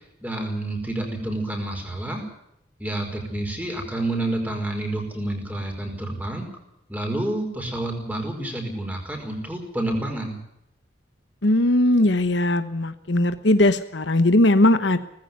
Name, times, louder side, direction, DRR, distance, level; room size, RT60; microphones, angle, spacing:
voice 1, 0.2-2.2 2.8-6.5 6.9-10.4, right 1 dB, 10° right, 2 dB, 5.1 m, -29 dB
voice 2, 11.4-15.0, left 1 dB, 70° left, 11 dB, 1.1 m, -19 dB
19.0 x 15.0 x 9.6 m, 0.80 s
head